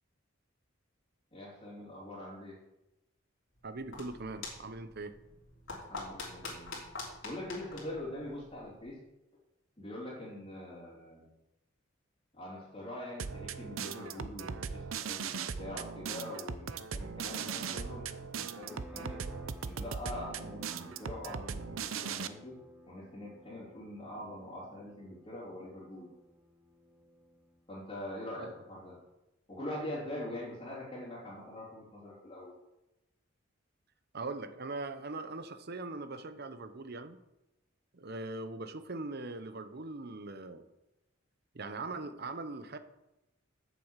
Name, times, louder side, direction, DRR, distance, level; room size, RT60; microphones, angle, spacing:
voice 1, 1.3-2.6 5.9-6.8 7.2-9.0 9.8-11.3 12.3-19.2 19.6-22.6 22.9-26.1 27.7-29.0 29.5-32.5, left 1 dB, 25° left, -10 dB, 3.3 m, -43 dB
sound 1, 3.6-8.9, left 3 dB, 70° left, 3.3 m, -46 dB
voice 2, 3.6-5.2 28.4-28.5 34.1-37.2 37.9-40.6 41.5-42.8, right 3 dB, 50° right, 10 dB, 0.8 m, -41 dB
sound 2, 13.2-22.3, right 6 dB, 85° right, 0.7 m, -39 dB
sound 3, 18.7-29.0, equal, 5° right, 1.2 m, -56 dB
8.5 x 7.3 x 7.4 m, 0.96 s
head